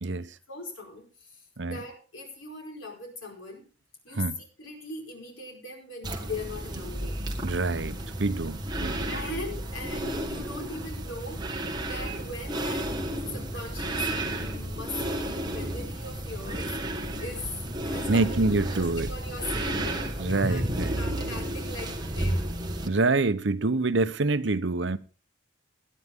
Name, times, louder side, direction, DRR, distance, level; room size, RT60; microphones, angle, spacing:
voice 1, 0.1-3.6 4.0-7.2 9.1-12.9 13.3-16.8 17.2-17.5 17.8-20.6 21.0-22.5, left 2 dB, 90° left, 4.8 m, -40 dB
sound 1, 6.0-22.9, right 1 dB, 20° right, 1.7 m, -32 dB
voice 2, 7.4-9.1 18.1-19.1 19.7-19.8 20.2-21.0 22.8-25.0, right 3 dB, 70° right, 0.8 m, -26 dB
18.0 x 11.0 x 3.6 m
head